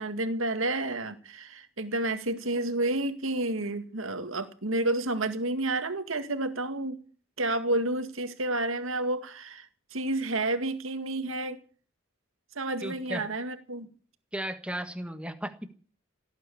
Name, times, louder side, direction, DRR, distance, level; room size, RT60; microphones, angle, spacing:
voice 1, 0.0-7.0 7.4-9.7 9.9-11.6 12.6-13.9, right 2 dB, 80° right, 9 dB, 2.0 m, -30 dB
voice 2, 12.8-13.3 14.3-15.8, right 1 dB, 5° right, 8 dB, 1.4 m, -35 dB
18.0 x 9.5 x 8.5 m, 0.42 s
head